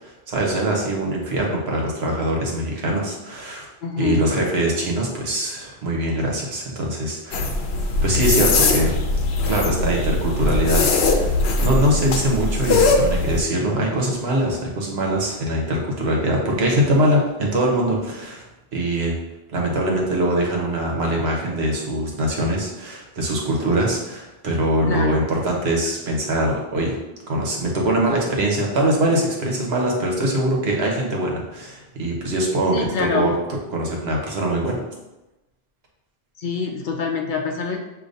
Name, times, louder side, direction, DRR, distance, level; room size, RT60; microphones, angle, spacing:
voice 1, 0.0-3.6 4.0-7.5 8.0-9.0 9.4-18.4 18.7-19.2 19.5-27.0 27.3-33.3 33.7-34.8, right 1 dB, 85° right, -1 dB, 1.2 m, -22 dB
voice 2, 3.8-4.2 24.9-25.2 32.7-33.3 36.4-37.8, left 5 dB, 55° left, 2 dB, 0.7 m, -25 dB
sound 1, 7.3-13.4, left 3 dB, 85° left, 0.9 m, -20 dB
6.4 x 2.8 x 2.6 m, 1.0 s
omnidirectional pair, 1.0 m